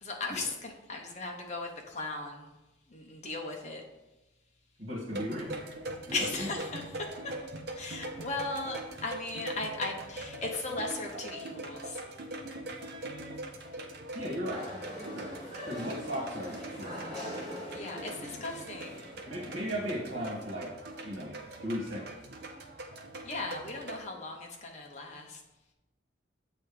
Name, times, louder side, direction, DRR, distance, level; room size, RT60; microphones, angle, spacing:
voice 1, 0.0-2.5 2.9-3.8 6.1-7.1 7.7-12.0 17.7-19.0 23.2-25.4, left 3 dB, 35° left, 1 dB, 1.0 m, -37 dB
voice 2, 4.8-5.6 6.1-6.5 14.1-14.7 15.1-15.4 15.7-17.1 19.3-20.7 21.0-21.4 21.6-22.1, equal, 85° right, -4 dB, 1.7 m, -36 dB
sound 1, 5.1-24.0, right 2 dB, 55° right, 0.8 m, -42 dB
sound 2, 14.5-20.3, left 1 dB, 20° right, 1.5 m, -43 dB
7.7 x 3.5 x 4.9 m, 1.0 s
head